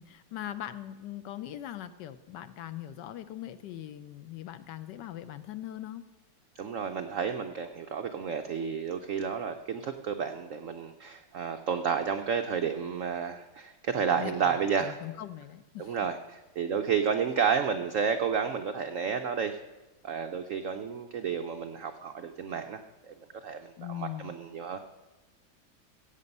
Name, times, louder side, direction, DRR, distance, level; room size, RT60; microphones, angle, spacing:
voice 1, 0.0-6.0 14.1-14.5 14.8-16.0 23.8-24.3, left 12 dB, 75° left, 12 dB, 1.1 m, -40 dB
voice 2, 6.5-15.0 15.8-19.6 20.0-23.1 23.4-24.8, right 6 dB, 90° right, 7 dB, 0.7 m, -31 dB
15.5 x 8.3 x 5.4 m, 1.1 s
omnidirectional pair, 2.1 m